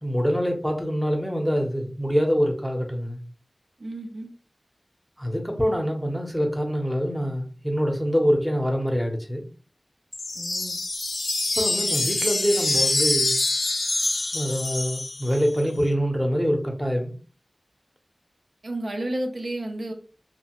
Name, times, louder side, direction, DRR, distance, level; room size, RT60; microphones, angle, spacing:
voice 1, 0.0-3.2 5.2-9.4 11.6-13.3 14.3-17.1, equal, 5° right, 0.7 m, -25 dB
voice 2, 3.8-4.3 10.3-10.8 18.6-19.9, right 1 dB, 75° right, 0.5 m, -31 dB
sound 1, 10.1-15.6, left 2 dB, 70° left, 0.4 m, -25 dB
2.8 x 2.1 x 2.9 m
wide cardioid pair, 50°, 0 cm